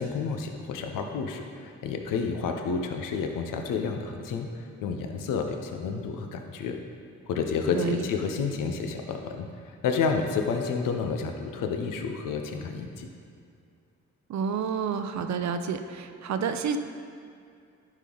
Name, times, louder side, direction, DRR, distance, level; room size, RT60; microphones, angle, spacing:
voice 1, 0.0-6.7 7.3-13.1, left 5 dB, 80° left, 4 dB, 0.8 m, -30 dB
voice 2, 14.3-16.8, right 6 dB, 60° right, 8 dB, 0.7 m, -29 dB
10.5 x 5.0 x 3.9 m, 2.3 s
supercardioid pair, 65°, 32 cm